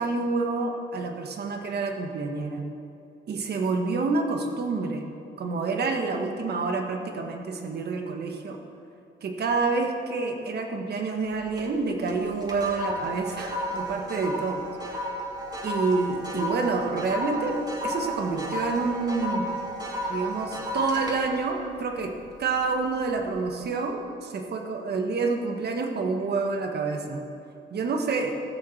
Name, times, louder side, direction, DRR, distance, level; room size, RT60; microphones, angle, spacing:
voice 1, 0.0-2.6 3.3-5.0 5.4-8.6 9.2-15.1 15.6-17.6 17.8-19.5 20.1-22.1 22.4-27.2 27.7-28.3, right 4 dB, 55° right, 4 dB, 1.5 m, -28 dB
sound 1, 11.2-11.8 12.1-22.6 23.1-23.4, equal, 20° right, 2.1 m, -33 dB
14.5 x 6.5 x 7.2 m, 2.5 s
cardioid pair, 90°, 20 cm